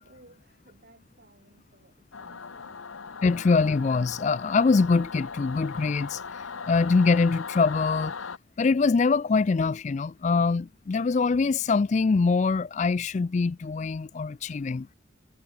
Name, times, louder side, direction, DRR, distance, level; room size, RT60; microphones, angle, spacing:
voice 1, 0.0-2.8, right 1 dB, 50° right, 4.0 m, -58 dB
Singing / Musical instrument, 2.1-8.4, left 5 dB, 90° left, 1.1 m, -38 dB
voice 2, 3.2-6.2 6.7-8.1 8.6-14.9, left 4 dB, 35° left, 0.3 m, -23 dB
head